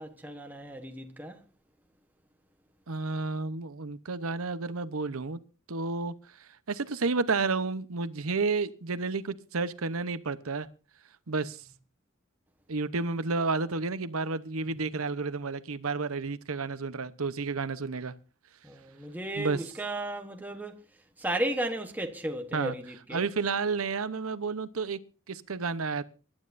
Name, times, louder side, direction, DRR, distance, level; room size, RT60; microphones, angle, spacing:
voice 1, 0.0-1.4 18.6-20.7 21.2-23.3, right 1 dB, 10° right, 1.1 m, -34 dB
voice 2, 2.9-5.4 5.7-10.7 11.3-11.6 12.7-18.1 19.4-19.7 22.5-22.7 23.1-25.0 25.3-26.0, right 4 dB, 90° right, 0.9 m, -31 dB
24.0 x 11.5 x 2.6 m
head